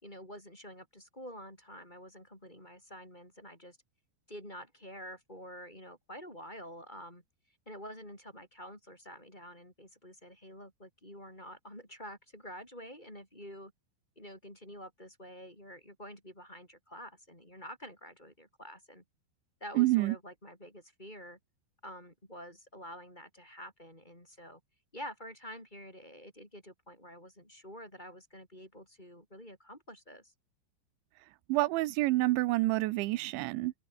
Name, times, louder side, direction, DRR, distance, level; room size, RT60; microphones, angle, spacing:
voice 1, 0.0-3.8 4.3-7.2 7.7-13.7 14.2-19.0 19.6-21.4 21.8-24.6 24.9-30.3, equal, 10° left, 5.3 m, -48 dB
voice 2, 19.8-20.2 31.5-33.7, right 19 dB, 90° right, 3.1 m, -28 dB
open air
omnidirectional pair, 5.3 m